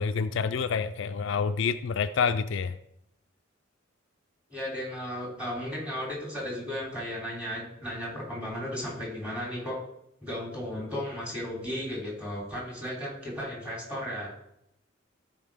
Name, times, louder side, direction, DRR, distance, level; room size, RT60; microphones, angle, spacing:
voice 1, 0.0-2.8, left 5 dB, 65° left, 10 dB, 0.4 m, -28 dB
voice 2, 4.5-9.8 10.2-14.3, equal, 5° right, -4 dB, 3.2 m, -35 dB
13.5 x 4.9 x 3.6 m, 0.77 s
head